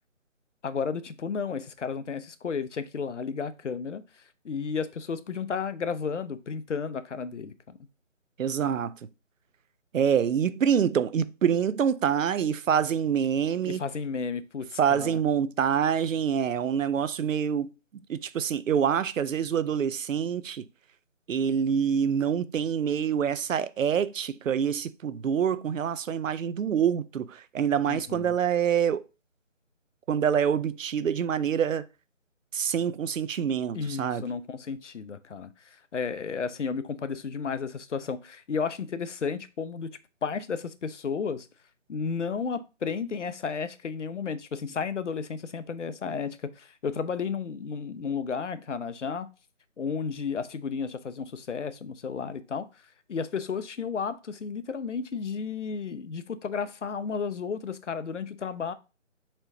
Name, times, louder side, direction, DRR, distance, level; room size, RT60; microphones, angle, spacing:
voice 1, 0.6-7.8 13.6-15.2 27.9-28.4 33.7-39.9 40.2-41.5 41.9-49.3 49.8-58.7, left 5 dB, 70° left, 0.6 m, -33 dB
voice 2, 8.4-9.0 9.9-13.8 14.8-17.7 18.1-20.7 21.3-29.1 30.1-31.9 32.5-34.2, right 8 dB, 90° right, 0.5 m, -26 dB
4.4 x 4.3 x 2.7 m
figure-of-eight pair, 175°, 38 cm